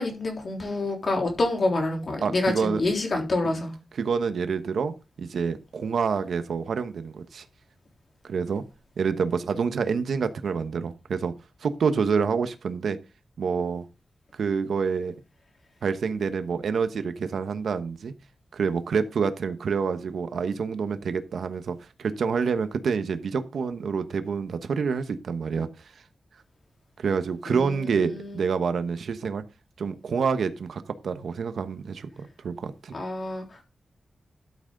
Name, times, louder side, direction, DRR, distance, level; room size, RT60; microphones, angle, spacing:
voice 1, 0.0-3.8 27.5-28.4 32.9-33.6, left 2 dB, 45° left, 2 dB, 3.6 m, -27 dB
voice 2, 2.2-2.8 3.4-3.6 4.0-7.4 8.2-8.6 9.0-11.3 11.6-13.0 13.4-13.8 14.3-15.1 15.8-18.1 18.5-25.9 27.0-29.4 29.8-32.9, right 5 dB, 80° right, 10 dB, 1.1 m, -27 dB
13.0 x 7.7 x 3.9 m, 0.28 s
wide cardioid pair, 150°, 0 cm